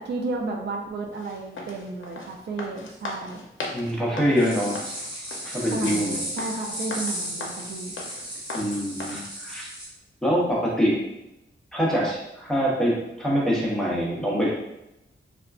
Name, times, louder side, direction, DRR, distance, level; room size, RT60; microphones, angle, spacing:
voice 1, 0.0-3.4 5.7-7.9, right 3 dB, 60° right, 0 dB, 0.4 m, -32 dB
sound 1, 1.1-9.2, left 2 dB, 75° left, 0.5 m, -38 dB
voice 2, 3.7-4.7 5.5-6.2 8.5-9.7 10.2-11.0 11.7-14.5, equal, 5° left, -5 dB, 0.6 m, -24 dB
sound 2, 4.4-9.9, equal, 20° right, 0.9 m, -35 dB
3.5 x 2.3 x 2.3 m, 0.89 s
wide cardioid pair, 180°, 20 cm